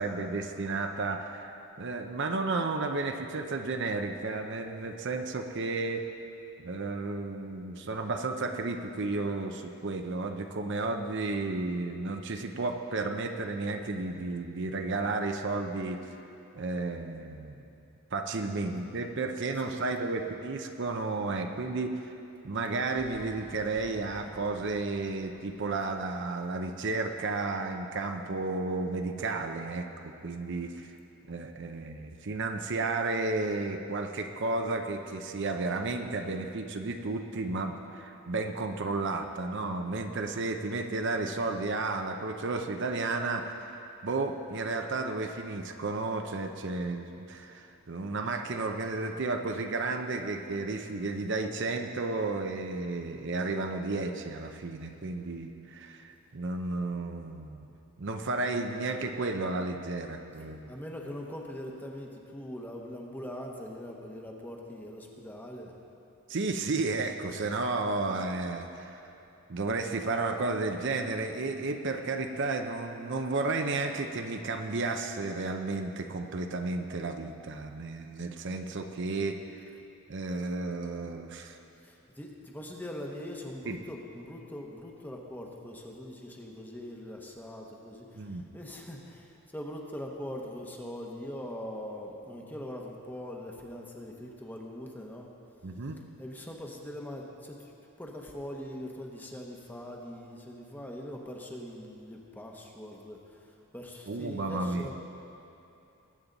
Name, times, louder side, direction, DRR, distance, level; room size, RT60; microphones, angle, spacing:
voice 1, 0.0-6.1 6.6-16.0 16.5-17.7 18.1-22.0 22.4-30.9 31.3-57.7 58.0-60.7 66.3-69.1 69.5-79.7 80.1-81.6 83.7-83.8 88.2-88.4 95.6-96.0 104.1-104.9, right 3 dB, 55° right, 5 dB, 0.6 m, -33 dB
voice 2, 19.6-20.3 60.7-65.7 81.8-95.3 96.2-97.7 98.0-105.0, left 1 dB, 10° left, 0 dB, 1.0 m, -42 dB
sound 1, 22.8-26.8, left 1 dB, 80° left, 3.3 m, -54 dB
20.5 x 8.7 x 4.0 m, 2.8 s
head